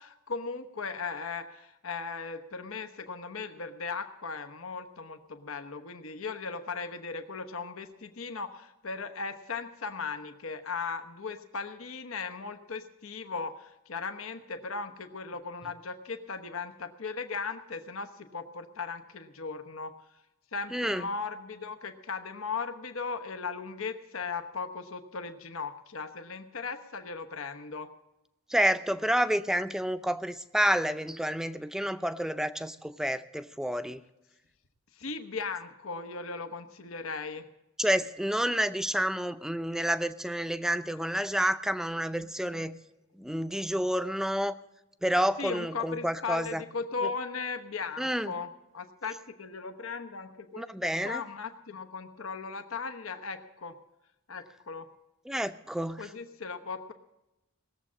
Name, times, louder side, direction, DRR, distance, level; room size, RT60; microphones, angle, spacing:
voice 1, 0.0-19.9 20.5-27.9 35.0-37.5 45.4-48.5 48.7-53.8 54.3-54.9 56.0-56.9, left 4 dB, 85° left, 8 dB, 1.0 m, -37 dB
voice 2, 20.7-21.1 28.5-34.0 37.8-42.8 43.2-44.6 45.0-46.6 48.0-48.3 50.6-51.2 55.3-56.1, equal, ahead, 11 dB, 0.5 m, -29 dB
19.0 x 7.4 x 8.4 m, 0.93 s
head